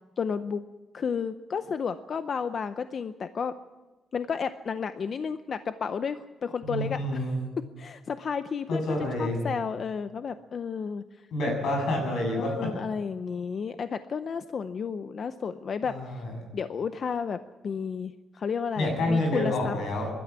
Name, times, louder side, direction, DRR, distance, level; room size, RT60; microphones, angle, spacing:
voice 1, 0.2-0.6 0.9-3.5 4.1-7.3 7.8-11.5 12.4-16.2 16.5-19.7, left 6 dB, 45° left, 11 dB, 0.6 m, -32 dB
voice 2, 6.6-7.4 8.7-9.4 11.3-12.7 15.8-16.3 18.8-20.1, left 1 dB, 80° left, 3 dB, 7.6 m, -28 dB
22.0 x 12.5 x 9.6 m, 1.2 s
cardioid pair, 145°, 0 cm